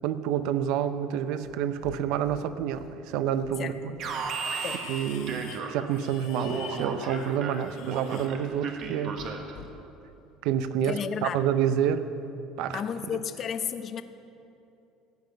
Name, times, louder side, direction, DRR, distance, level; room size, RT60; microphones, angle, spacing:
voice 1, 0.0-3.9 4.2-4.4 4.9-9.2 10.4-12.1 12.6-12.8, right 9 dB, 65° right, 11 dB, 0.6 m, -28 dB
Livestock farm animals working animals, 1.3-2.0 2.2-3.0 3.3-8.9 9.2-9.7, left 8 dB, 65° left, 1.2 m, -46 dB
Alarm, 4.0-6.0 6.4-9.6, right 5 dB, 45° right, 1.1 m, -35 dB
voice 2, 10.9-11.4 12.7-14.0, left 8 dB, 30° left, 11 dB, 0.6 m, -32 dB
17.0 x 5.9 x 9.1 m, 2.8 s
cardioid pair, 165°, 0 cm